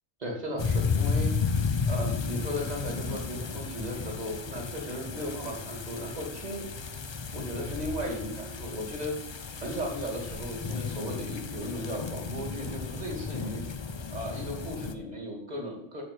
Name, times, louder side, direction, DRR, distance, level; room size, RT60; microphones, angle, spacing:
voice 1, 0.2-6.7 7.3-9.1 9.6-13.6 14.1-16.0, equal, 35° right, 1 dB, 2.3 m, -36 dB
sound 1, 0.6-14.9, left 5 dB, 40° left, 0.4 m, -33 dB
7.2 x 6.4 x 7.6 m, 0.80 s
omnidirectional pair, 1.2 m